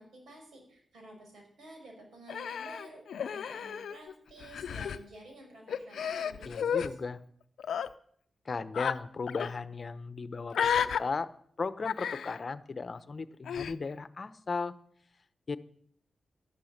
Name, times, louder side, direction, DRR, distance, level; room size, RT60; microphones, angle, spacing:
voice 1, 0.0-7.0, right 1 dB, 85° right, 2 dB, 5.5 m, -51 dB
Human voice, 2.3-4.1 4.4-5.0 5.7-6.9 7.6-7.9 8.7-9.0 9.3-9.5 10.5-11.0 11.8-12.4 13.5-13.7, left 8 dB, 85° left, 0.5 m, -32 dB
voice 2, 6.5-7.2 8.4-11.3 11.6-14.7 15.5-15.6, left 4 dB, 50° left, 13 dB, 0.8 m, -36 dB
12.5 x 11.5 x 6.6 m, 0.64 s
cardioid pair, 65°, 0 cm